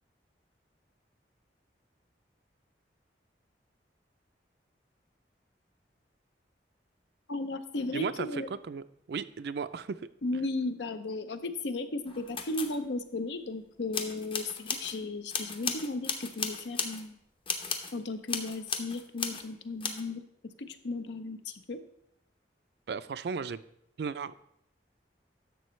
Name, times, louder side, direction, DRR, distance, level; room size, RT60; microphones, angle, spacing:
voice 1, 7.3-8.5 10.2-17.2 17.9-20.2 20.6-21.8, left 2 dB, 80° left, 10 dB, 0.7 m, -35 dB
voice 2, 7.9-10.0 22.9-23.6 24.0-24.4, right 5 dB, 65° right, 14 dB, 0.3 m, -36 dB
sound 1, 12.1-12.8 13.9-14.9 15.3-17.0 17.5-17.9 18.3-19.4 19.8-20.0, left 5 dB, 30° left, 0.7 m, -35 dB
11.0 x 6.8 x 3.1 m, 0.75 s
head